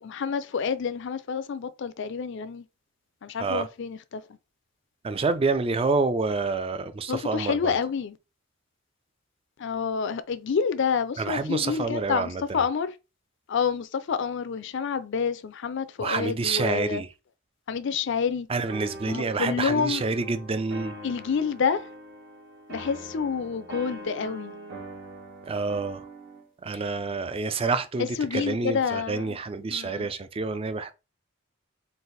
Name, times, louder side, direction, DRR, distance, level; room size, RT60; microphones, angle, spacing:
voice 1, 0.0-2.7 3.2-4.2 7.1-8.2 9.6-12.9 13.5-17.0 17.7-18.5 19.1-20.0 21.0-21.8 22.7-24.5 28.2-29.4 29.7-30.1, left 6 dB, 65° left, 0.4 m, -28 dB
voice 2, 5.0-7.8 11.2-12.6 16.0-17.1 18.5-20.9 25.4-26.1 26.6-30.9, right 4 dB, 30° right, 0.4 m, -28 dB
sound 1, 18.7-26.5, right 1 dB, 60° right, 1.3 m, -42 dB
4.0 x 2.5 x 4.0 m
head